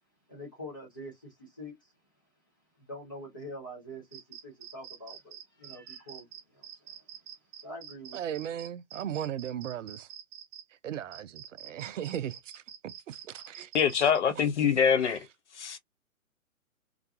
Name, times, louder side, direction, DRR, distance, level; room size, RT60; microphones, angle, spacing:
voice 1, 0.3-1.9 2.8-7.0 7.6-8.2, equal, 15° left, 0.4 m, -45 dB
sound 1, 4.1-10.6 11.1-14.2, right 9 dB, 15° right, 0.9 m, -47 dB
voice 2, 8.1-10.1 10.8-13.7, right 10 dB, 60° right, 0.5 m, -37 dB
voice 3, 13.7-15.3 15.6-15.8, left 7 dB, 55° left, 0.7 m, -24 dB
2.4 x 2.2 x 2.6 m
figure-of-eight pair, 125°, 42 cm